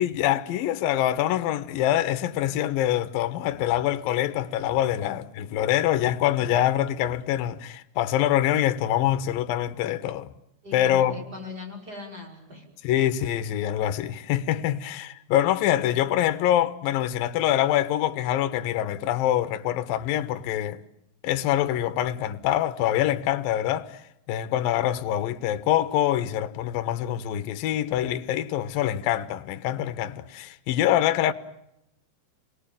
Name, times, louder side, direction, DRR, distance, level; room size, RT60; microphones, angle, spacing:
voice 1, 0.0-10.3 10.7-11.2 12.8-20.8 21.2-31.3, left 12 dB, 70° left, 2.4 m, -25 dB
voice 2, 10.6-12.6, left 3 dB, 20° right, 5.8 m, -39 dB
28.5 x 19.5 x 9.0 m
omnidirectional pair, 5.2 m